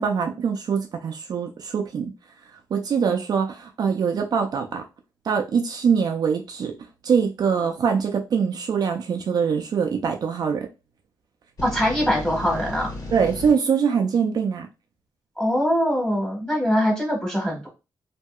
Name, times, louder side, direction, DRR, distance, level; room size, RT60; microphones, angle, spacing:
voice 1, 0.0-2.1 2.7-4.8 5.2-6.7 7.0-10.7 13.1-14.7, right 6 dB, 55° right, 0.4 m, -23 dB
sound 1, 11.6-13.5, left 2 dB, 60° left, 1.6 m, -34 dB
voice 2, 11.6-12.9 15.4-17.7, equal, 10° left, 1.4 m, -22 dB
2.7 x 2.6 x 2.3 m
cardioid pair, 95°, 8 cm